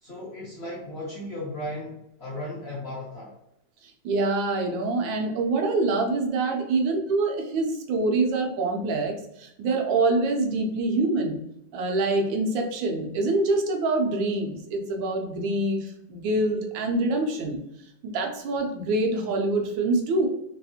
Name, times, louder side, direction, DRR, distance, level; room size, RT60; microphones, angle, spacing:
voice 1, 0.0-3.3, left 1 dB, 55° left, -5 dB, 0.7 m, -36 dB
voice 2, 3.8-11.4 11.7-17.6 18.0-20.3, right 2 dB, 90° right, 2 dB, 1.4 m, -25 dB
3.5 x 2.4 x 2.7 m, 0.80 s
omnidirectional pair, 2.0 m